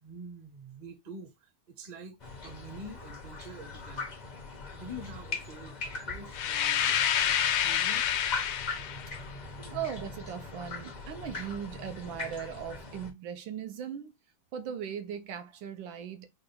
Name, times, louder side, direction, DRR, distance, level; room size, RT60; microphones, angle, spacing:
voice 1, 0.0-4.1 4.7-8.0 8.8-9.7, right 1 dB, 35° right, 0.7 m, -47 dB
sound 1, 2.2-13.1, left 3 dB, 50° left, 0.5 m, -41 dB
sound 2, 6.3-9.1, left 9 dB, 75° left, 1.2 m, -28 dB
voice 2, 9.7-14.1 14.5-16.3, right 8 dB, 80° right, 1.4 m, -38 dB
4.8 x 2.2 x 3.3 m
omnidirectional pair, 2.2 m